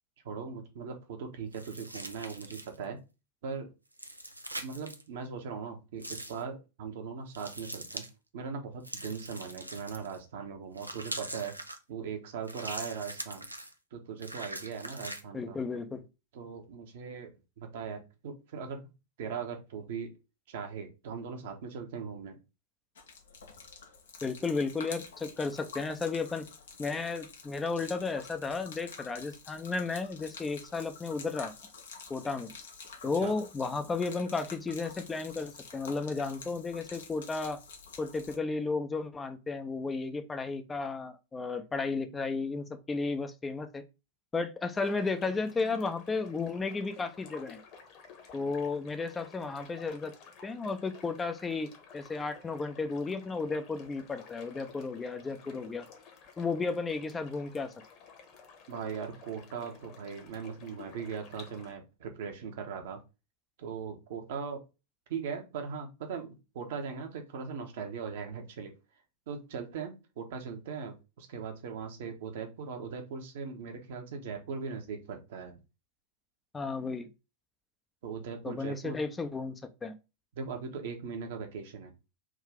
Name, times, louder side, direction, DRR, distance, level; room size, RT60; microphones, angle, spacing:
voice 1, 0.2-3.0 3.4-3.7 4.6-8.0 8.3-11.5 11.9-13.5 13.9-15.6 16.3-18.9 19.2-20.1 20.5-22.4 33.2-33.4 58.7-63.0 63.6-64.6 65.1-68.7 69.3-75.6 78.0-79.0 80.3-81.9, right 6 dB, 55° right, 1.0 m, -39 dB
sound 1, 1.5-2.8 3.9-5.0 6.0-6.4 7.3-8.1 8.8-10.2 10.8-11.8 12.4-13.7 14.2-15.2, right 1 dB, 85° right, 0.5 m, -42 dB
voice 2, 15.3-16.0 24.2-26.5 26.8-31.5 32.1-32.5 33.0-37.6 38.0-43.8 44.3-47.6 48.3-50.1 50.4-55.9 56.4-57.7 76.5-77.1 78.4-79.9, left 4 dB, 15° left, 0.6 m, -33 dB
Gurgling / Liquid, 23.0-38.4, left 5 dB, 65° left, 0.8 m, -49 dB
sound 2, 44.7-61.7, left 6 dB, 40° left, 1.2 m, -53 dB
3.7 x 2.7 x 4.7 m
figure-of-eight pair, 90°, 0 cm